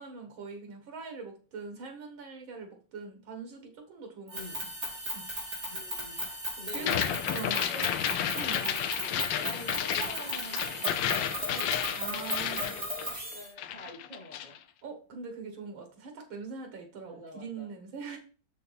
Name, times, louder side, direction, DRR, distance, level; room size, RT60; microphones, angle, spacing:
voice 1, 0.0-4.7 5.1-5.6 6.1-6.4 6.7-7.0 7.3-7.6 8.3-8.7 12.0-12.7 14.8-18.2, right 4 dB, 90° right, 4 dB, 2.4 m, -42 dB
voice 2, 4.3-4.7 5.7-6.3 6.6-14.6 17.0-17.7, equal, 35° left, -6 dB, 5.2 m, -47 dB
sound 1, 4.3-13.5, equal, 45° right, 4.3 m, -36 dB
sound 2, 6.8-13.3 13.6-14.6, left 10 dB, 75° left, 1.4 m, -32 dB
6.9 x 6.6 x 4.1 m, 0.37 s
omnidirectional pair, 2.1 m